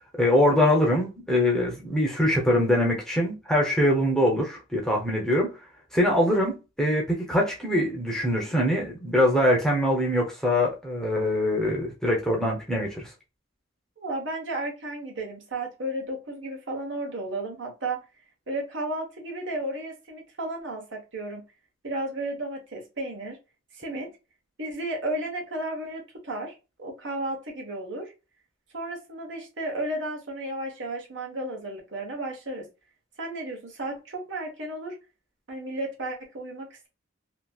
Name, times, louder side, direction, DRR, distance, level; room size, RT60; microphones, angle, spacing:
voice 1, 0.2-5.5 5.9-13.1, left 1 dB, 5° left, 0.7 m, -23 dB
voice 2, 14.0-18.0 18.5-21.4 21.8-23.4 23.7-24.1 24.6-26.5 26.8-28.1 28.7-32.7 33.2-35.0 35.5-36.9, right 1 dB, 65° right, 1.1 m, -33 dB
2.9 x 2.7 x 2.3 m
head